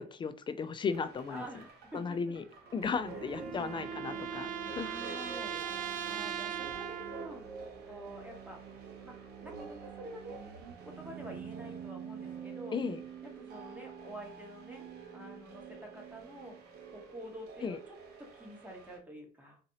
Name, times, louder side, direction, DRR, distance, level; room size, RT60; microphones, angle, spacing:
voice 1, 0.0-1.5 1.9-2.4 2.7-4.9 12.7-13.0 17.6-17.8, left 5 dB, 30° left, 12 dB, 0.4 m, -35 dB
sound 1, 0.9-19.0, right 5 dB, 75° right, 0.9 m, -47 dB
voice 2, 1.3-2.3 3.0-3.7 4.7-7.4 7.8-8.6 9.0-10.4 10.8-12.8 13.2-14.9 15.1-16.6 16.9-19.6, right 1 dB, 10° right, 1 dB, 1.1 m, -48 dB
sound 2, 2.7-7.4, right 10 dB, 50° right, 0.4 m, -40 dB
4.0 x 2.6 x 2.7 m, 0.39 s
cardioid pair, 110°, 17 cm